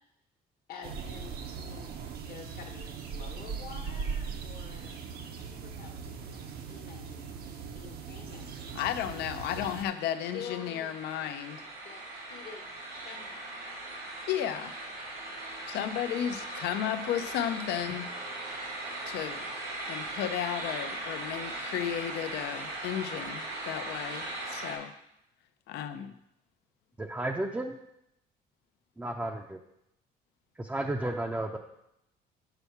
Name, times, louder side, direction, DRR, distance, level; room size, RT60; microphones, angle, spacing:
voice 1, 0.7-1.9 2.2-5.0 5.4-8.8 9.5-9.6 10.3-10.9 11.2-11.3 11.8-13.6, left 6 dB, 60° left, 0 dB, 1.1 m, -48 dB
sound 1, 0.8-9.8, right 6 dB, 65° right, 0.8 m, -40 dB
sound 2, 8.3-24.7, right 2 dB, 85° right, 2.6 m, -39 dB
voice 2, 8.7-11.6 14.3-14.7 15.7-18.1 19.1-19.5 19.9-24.9 25.7-26.1, left 10 dB, 80° left, 10 dB, 0.6 m, -33 dB
voice 3, 27.0-27.8 29.0-29.6 30.6-31.6, right 1 dB, 10° right, 2 dB, 0.5 m, -33 dB
6.8 x 4.5 x 5.8 m, 0.82 s
cardioid pair, 110°, 17 cm